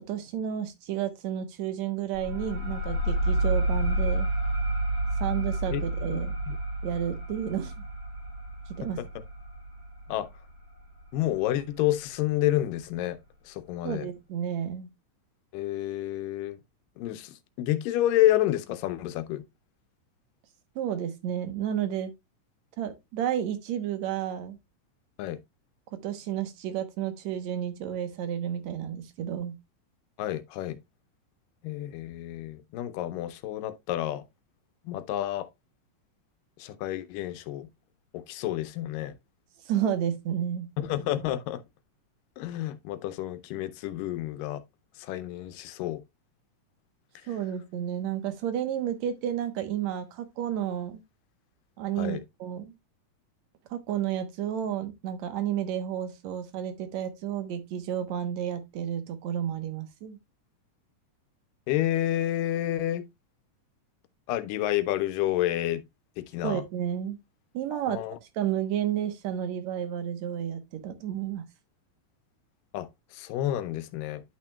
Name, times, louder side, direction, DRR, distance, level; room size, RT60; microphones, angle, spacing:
voice 1, 0.1-4.3 5.2-6.4 6.8-7.9 8.8-9.0 13.8-14.9 20.8-22.1 22.8-24.6 26.0-29.5 39.7-40.7 47.3-51.0 51.8-52.7 53.7-60.2 66.4-67.2 67.5-68.0 68.4-71.4, right 10 dB, 65° right, 2.0 m, -31 dB
sound 1, 2.1-11.4, right 1 dB, 40° right, 2.5 m, -30 dB
voice 2, 11.1-13.2 13.5-14.1 15.5-16.6 17.0-19.4 25.2-25.4 30.2-30.8 31.6-34.2 34.9-35.5 36.6-37.7 38.1-39.1 40.8-41.6 42.4-44.6 45.0-46.0 52.0-52.2 61.7-63.1 64.3-65.8 66.2-66.6 67.7-68.2 72.7-72.9 73.1-74.2, left 13 dB, 80° left, 2.3 m, -29 dB
11.0 x 5.8 x 2.2 m
omnidirectional pair, 3.9 m